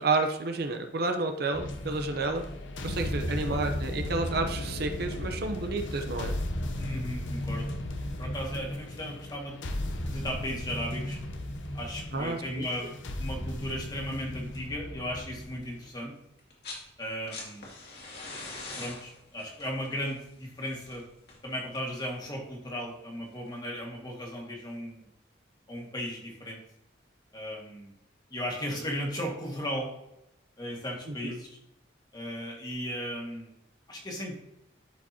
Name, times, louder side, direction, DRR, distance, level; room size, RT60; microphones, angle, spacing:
voice 1, 0.0-2.4 2.8-6.3 12.1-12.7 31.1-31.3, right 3 dB, 60° right, 5 dB, 0.8 m, -30 dB
sound 1, 1.5-15.8, left 1 dB, 85° left, 0.8 m, -35 dB
voice 2, 3.3-3.6 6.8-7.7 8.2-11.2 11.7-12.9 13.2-16.1 17.0-17.7 18.8-21.0 21.4-25.1 25.7-26.6 27.3-27.9 28.3-29.9 30.6-31.5 32.1-33.5 33.9-34.3, equal, 20° left, -1 dB, 2.0 m, -36 dB
sound 2, 16.4-16.9 17.1-22.0 23.3-23.4, left 3 dB, 60° left, 2.4 m, -43 dB
11.5 x 5.2 x 2.8 m, 0.84 s
head